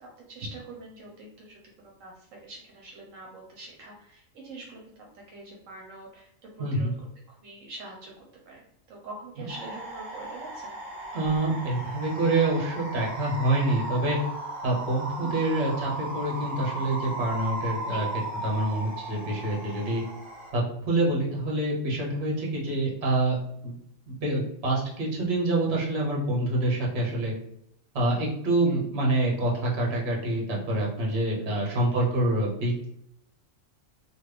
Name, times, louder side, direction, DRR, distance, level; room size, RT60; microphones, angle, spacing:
voice 1, 0.0-6.3 6.6-6.9 7.3-8.6 8.9-10.8 15.2-15.5 17.9-18.0 31.4-31.7, right 2 dB, 80° right, -1 dB, 1.0 m, -44 dB
voice 2, 6.6-6.9 11.1-14.2 14.6-18.1 18.4-20.0 20.5-23.4 23.6-23.7 24.1-27.3 27.9-32.9, right 2 dB, 55° right, -3 dB, 1.2 m, -26 dB
sound 1, 9.5-20.5, right 1 dB, 30° right, 0.9 m, -36 dB
3.1 x 2.2 x 3.3 m, 0.75 s
omnidirectional pair, 1.3 m